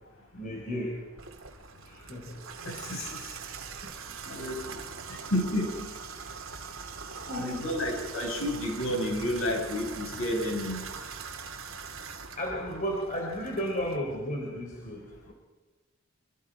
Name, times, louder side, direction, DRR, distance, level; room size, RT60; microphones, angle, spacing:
voice 1, 0.3-1.0 1.9-2.4 3.8-4.3 7.3-8.3 12.4-15.3, equal, 40° left, -1 dB, 3.8 m, -34 dB
Water tap faucet / Bathtub (filling or washing), 1.2-14.0, right 5 dB, 80° right, 2.4 m, -42 dB
voice 2, 2.6-3.2 4.3-4.6 5.1-5.9 7.1-10.8, left 1 dB, 80° left, 2 dB, 6.4 m, -31 dB
26.0 x 25.5 x 5.0 m, 1.2 s
head